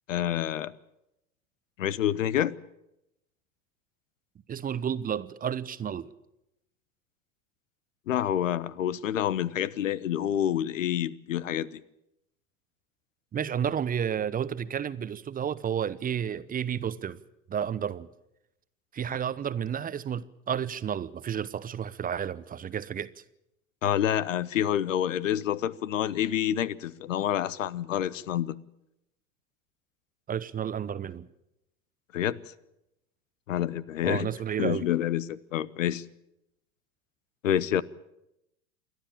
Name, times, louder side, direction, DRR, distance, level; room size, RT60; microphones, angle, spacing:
voice 1, 0.1-0.7 1.8-2.6 8.1-11.8 23.8-28.6 32.1-32.4 33.5-34.3 34.6-36.0 37.4-37.8, left 11 dB, 75° left, 0.8 m, -28 dB
voice 2, 4.5-6.1 13.3-17.2 17.5-18.1 18.9-23.1 30.3-31.3 34.0-34.9, right 8 dB, 20° right, 0.8 m, -31 dB
28.5 x 12.0 x 8.8 m
figure-of-eight pair, 80°, 39 cm